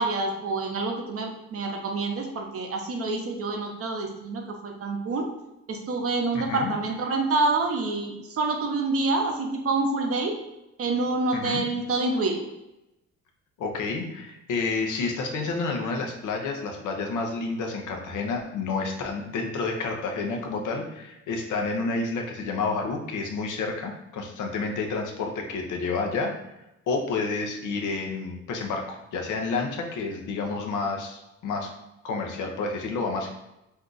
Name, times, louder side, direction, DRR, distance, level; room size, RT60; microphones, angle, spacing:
voice 1, 0.0-5.3 5.7-10.3 10.8-12.4, right 3 dB, 50° right, 3 dB, 0.6 m, -27 dB
voice 2, 6.3-6.7 11.3-11.6 13.6-26.3 26.9-31.7 32.0-33.3, left 4 dB, 80° left, 2 dB, 0.7 m, -29 dB
2.7 x 2.3 x 3.8 m, 0.91 s
cardioid pair, 100°, 30 cm